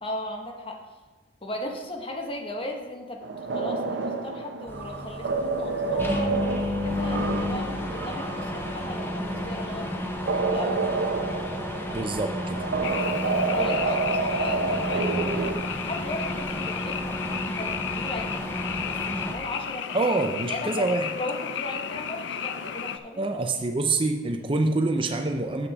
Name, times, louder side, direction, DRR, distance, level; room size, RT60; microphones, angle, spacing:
voice 1, 0.0-0.8 1.4-3.2 3.5-9.9 10.4-10.8 13.5-15.5 15.8-20.0 20.5-23.3, left 1 dB, 30° left, 2 dB, 1.1 m, -36 dB
sound 1, 3.2-15.5, right 3 dB, 75° right, 0.8 m, -29 dB
sound 2, 4.7-19.3, left 1 dB, 10° left, 0.7 m, -32 dB
voice 2, 11.9-12.6 14.7-15.3 19.9-21.1 23.2-25.7, right 2 dB, 30° right, 5 dB, 0.5 m, -26 dB
Frog, 12.8-23.0, left 8 dB, 70° left, 0.5 m, -34 dB
7.8 x 6.2 x 6.0 m, 1.3 s
head